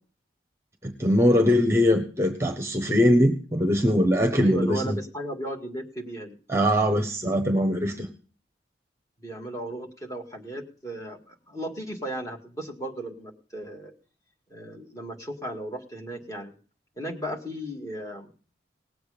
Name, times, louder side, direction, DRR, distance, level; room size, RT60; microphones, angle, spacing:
voice 1, 0.8-5.0 6.5-8.1, equal, 15° right, 6 dB, 1.1 m, -22 dB
voice 2, 4.4-6.4 9.2-13.9 14.5-16.5 17.0-18.3, right 1 dB, 20° left, 1 dB, 2.1 m, -35 dB
18.5 x 8.0 x 5.1 m, 0.40 s
head